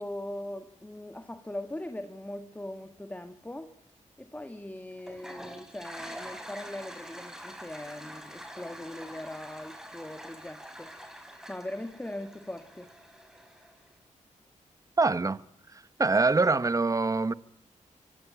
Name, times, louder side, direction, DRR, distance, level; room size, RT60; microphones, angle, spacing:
voice 1, 0.0-3.7 4.2-10.9 11.5-12.9, left 1 dB, 10° left, 1.7 m, -40 dB
Toilet flush, 5.0-13.9, equal, 5° right, 4.7 m, -46 dB
voice 2, 15.0-15.4 16.0-17.3, right 3 dB, 25° right, 0.9 m, -24 dB
25.0 x 18.5 x 8.8 m
cardioid pair, 75°, 13 cm